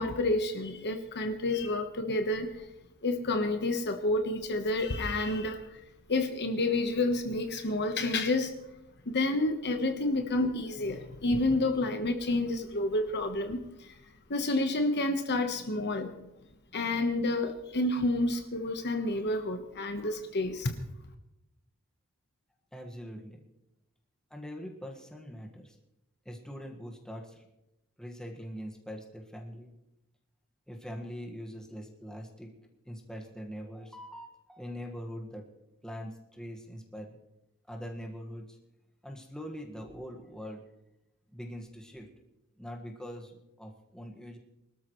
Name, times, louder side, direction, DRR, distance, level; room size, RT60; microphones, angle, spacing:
voice 1, 0.0-2.7 3.0-5.8 6.1-8.5 9.1-14.0 14.3-16.2 16.7-20.7, left 2 dB, 50° left, 6 dB, 1.2 m, -29 dB
voice 2, 22.7-23.4 24.3-25.8 26.3-27.5 28.0-29.7 30.7-32.5 32.9-35.5 35.8-37.2 37.7-38.6 39.0-40.6 41.3-42.1 42.6-44.4, equal, 5° left, 1 dB, 1.7 m, -43 dB
24.0 x 13.0 x 3.2 m, 0.91 s
head